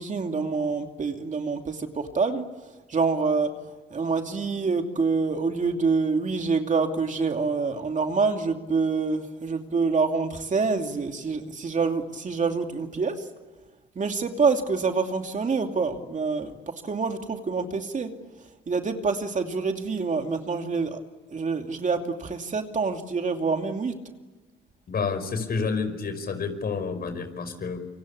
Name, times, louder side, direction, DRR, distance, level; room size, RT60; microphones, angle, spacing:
voice 1, 0.0-2.4 2.9-3.5 3.9-13.2 14.0-16.5 16.8-18.1 18.7-21.0 21.3-23.9, right 4 dB, 40° right, 5 dB, 2.6 m, -26 dB
voice 2, 24.9-27.8, left 5 dB, 50° left, 9 dB, 5.2 m, -29 dB
28.0 x 24.5 x 8.6 m, 1.2 s
cardioid pair, 90°, 20 cm